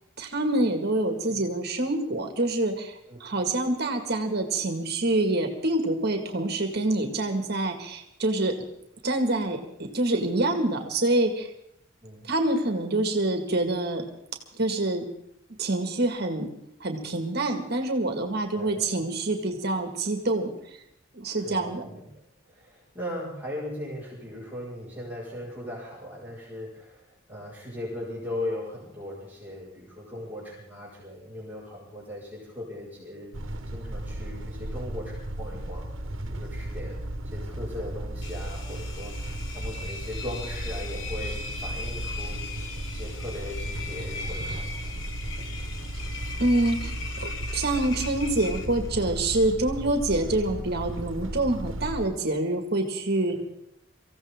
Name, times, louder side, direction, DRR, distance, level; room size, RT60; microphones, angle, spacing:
voice 1, 0.2-8.5 9.0-9.6 9.9-11.5 12.2-14.0 14.5-15.0 15.6-16.5 16.8-20.5 21.1-21.8 46.4-53.4, right 2 dB, 55° right, 4 dB, 2.0 m, -26 dB
voice 2, 21.4-33.3 33.7-35.9 36.2-42.4 42.9-45.0 49.7-49.9 53.3-53.4, left 1 dB, 10° right, -7 dB, 5.0 m, -38 dB
sound 1, 33.3-52.1, right 1 dB, 90° right, 1.3 m, -35 dB
Engine, 38.2-49.1, left 4 dB, 75° left, 1.5 m, -39 dB
25.0 x 15.5 x 3.7 m, 0.75 s
head